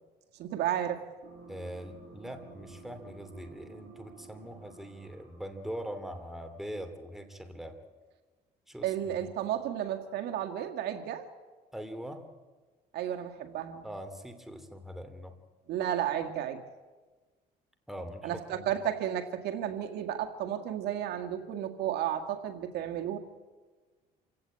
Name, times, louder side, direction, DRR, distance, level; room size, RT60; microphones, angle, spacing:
voice 1, 0.4-1.0 8.8-11.3 12.9-13.9 15.7-16.6 18.2-23.2, right 10 dB, 75° right, 5 dB, 2.0 m, -33 dB
sound 1, 1.2-6.8, right 4 dB, 60° right, 6.0 m, -53 dB
voice 2, 1.5-7.8 8.7-9.1 11.7-12.2 13.8-15.3 17.9-18.7, equal, ahead, 7 dB, 2.8 m, -42 dB
27.0 x 16.5 x 8.7 m, 1.3 s
cardioid pair, 110°, 17 cm